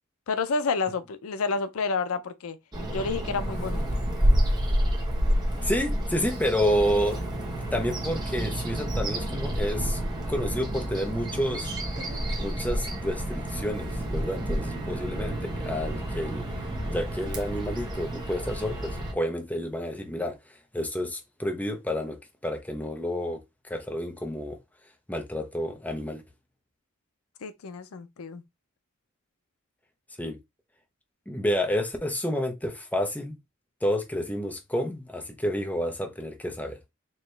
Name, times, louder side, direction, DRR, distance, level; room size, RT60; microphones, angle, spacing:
voice 1, 0.3-2.6 2.9-3.8 27.4-28.4, left 4 dB, 85° left, 0.5 m, -29 dB
Bird vocalization bird call bird song, 2.7-19.1, equal, 20° right, 1.1 m, -29 dB
voice 2, 5.6-7.2 7.7-10.0 10.3-11.7 12.4-16.4 16.8-20.4 20.7-22.2 22.4-24.6 25.1-26.2 30.2-30.4 31.3-33.4 33.8-36.8, equal, 10° left, 0.8 m, -29 dB
4.5 x 2.9 x 3.2 m
head